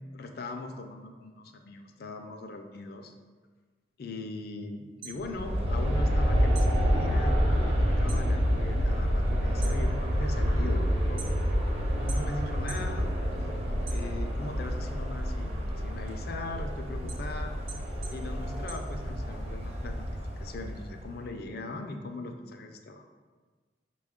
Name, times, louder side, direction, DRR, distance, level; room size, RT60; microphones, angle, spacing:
voice 1, 0.1-3.1 4.0-11.3 11.9-13.2 13.9-17.6 18.1-20.1 20.4-23.0, left 2 dB, 55° left, 5 dB, 0.4 m, -40 dB
sound 1, 4.8-6.2 6.5-8.3 8.6-9.1 9.5-11.7 12.1-12.9 13.3-14.5 14.9-19.5, right 5 dB, 55° right, 0.9 m, -47 dB
Aircraft, 5.2-21.2, equal, 35° right, 0.6 m, -28 dB
5.7 x 2.3 x 3.6 m, 1.4 s
head